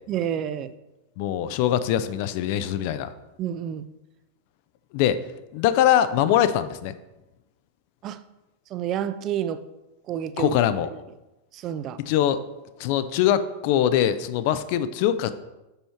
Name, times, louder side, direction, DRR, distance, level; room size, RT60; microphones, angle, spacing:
voice 1, 0.1-0.7 3.4-3.9 8.0-8.2 8.7-9.6 10.1-10.5 11.5-12.0, right 10 dB, 35° right, 13 dB, 0.3 m, -29 dB
voice 2, 1.2-3.1 4.9-5.2 5.5-6.9 10.4-10.9 12.0-12.4 12.8-15.4, left 11 dB, 45° left, 12 dB, 0.4 m, -22 dB
5.5 x 5.5 x 4.4 m, 0.99 s
figure-of-eight pair, 90°, 0 cm